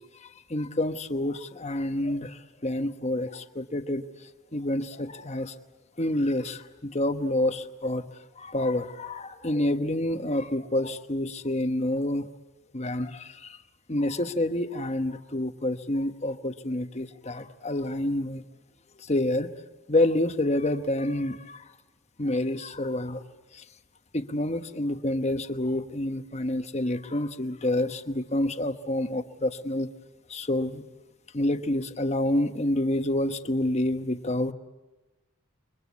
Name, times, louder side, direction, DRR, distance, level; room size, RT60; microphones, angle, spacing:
voice 1, 0.0-5.5 6.0-8.1 8.4-12.3 12.7-13.6 13.9-18.4 19.0-19.5 19.9-21.7 22.2-23.2 23.5-23.6 24.1-29.9 30.3-30.8 31.3-34.5, left 1 dB, 30° left, 9 dB, 1.1 m, -28 dB
29.0 x 23.0 x 8.4 m, 1.1 s
head